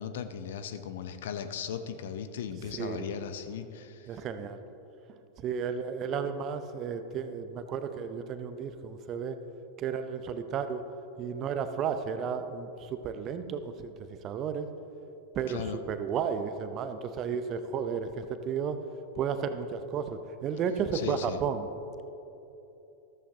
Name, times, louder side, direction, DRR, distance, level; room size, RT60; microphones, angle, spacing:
voice 1, 0.0-4.2 15.5-15.8 20.9-21.4, left 8 dB, 60° left, 10 dB, 0.6 m, -37 dB
voice 2, 2.8-3.1 4.1-4.6 5.4-9.4 9.8-10.8 11.2-14.7 15.3-18.8 19.2-21.7, right 7 dB, 35° right, 10 dB, 0.7 m, -33 dB
14.0 x 13.5 x 2.8 m, 3.0 s
figure-of-eight pair, 90°, 0 cm